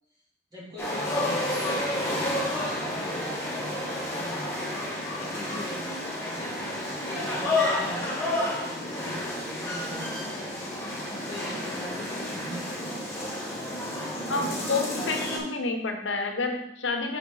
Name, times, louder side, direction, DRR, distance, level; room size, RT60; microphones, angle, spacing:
voice 1, 0.5-4.3 5.1-9.1 9.4-13.2 14.2-14.5, equal, 20° right, -7 dB, 2.7 m, -43 dB
sound 1, 0.8-15.4, left 1 dB, 15° left, 1.6 m, -30 dB
voice 2, 14.3-17.2, left 3 dB, 85° left, 4 dB, 1.0 m, -29 dB
6.5 x 6.5 x 3.9 m, 0.76 s
head